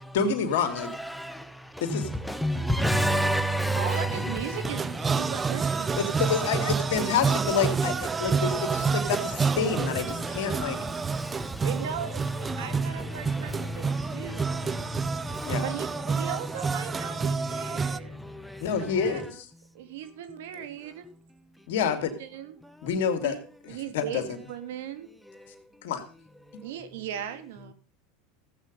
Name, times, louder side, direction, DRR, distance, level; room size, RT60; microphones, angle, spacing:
voice 1, 0.1-0.9 1.8-2.1 6.0-10.8 15.4-15.7 18.6-19.4 21.7-22.1 22.8-23.4 23.7-24.4 25.8-26.0 26.5-26.6, left 6 dB, 75° left, 2.4 m, -28 dB
voice 2, 1.1-4.7 5.1-5.9 8.1-9.1 10.1-11.7 12.5-15.6 16.8-18.6, equal, ahead, 1.3 m, -32 dB
voice 3, 3.7-6.2 11.6-14.9 15.6-18.2 18.8-19.2 19.7-21.1 21.8-22.6 23.2-23.4 23.7-25.1 26.6-27.7, right 9 dB, 75° right, 2.0 m, -38 dB
sound 1, 4.6-18.0, right 5 dB, 20° right, 0.5 m, -29 dB
15.0 x 8.3 x 5.3 m
hypercardioid pair, 105°, 0 cm